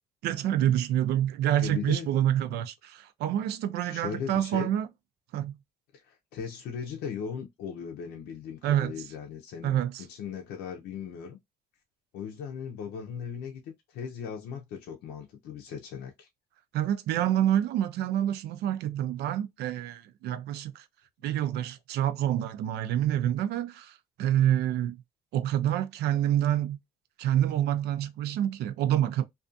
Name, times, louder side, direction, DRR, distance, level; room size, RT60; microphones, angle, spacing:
voice 1, 0.2-4.9 5.3-5.6 8.6-9.1 9.6-10.0 16.7-20.9 21.2-25.0 25.3-26.8 27.2-29.3, right 11 dB, 75° right, 0.4 m, -27 dB
voice 2, 1.6-2.1 3.9-4.7 5.9-11.4 12.1-16.3, left 7 dB, 75° left, 0.6 m, -38 dB
2.4 x 2.3 x 2.5 m
cardioid pair, 110°, 17 cm